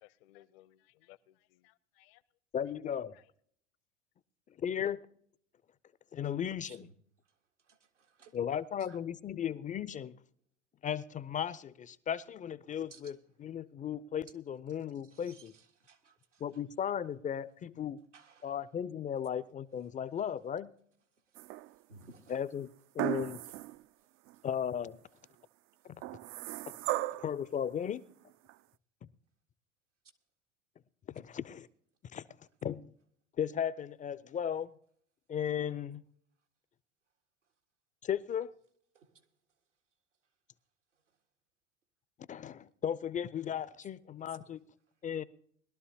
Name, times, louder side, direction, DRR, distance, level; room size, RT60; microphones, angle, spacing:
voice 1, 0.0-2.2 3.1-3.2, left 16 dB, 55° left, 0.9 m, -61 dB
voice 2, 2.5-3.2 4.6-5.0 6.1-6.9 8.3-10.2 10.8-15.5 16.4-18.0 18.4-20.7 22.3-22.7 22.9-23.4 24.4-25.0 27.2-28.0 31.1-31.7 32.1-32.2 32.6-32.9 33.4-34.7 35.3-36.0 38.0-38.5 42.3-44.6 45.0-45.2, left 9 dB, 20° left, 0.5 m, -36 dB
voice 3, 7.7-8.3 8.9-9.0 12.9-13.1 15.1-16.4 18.1-18.5 21.9-22.4 23.5-23.6 39.0-39.2 44.3-44.4, right 4 dB, 90° right, 1.8 m, -58 dB
sound 1, 21.3-22.0 23.0-23.8 24.3-24.4 26.0-27.4 28.5-28.6, right 17 dB, 40° right, 0.4 m, -36 dB
21.0 x 12.5 x 2.8 m
figure-of-eight pair, 80°, 35 cm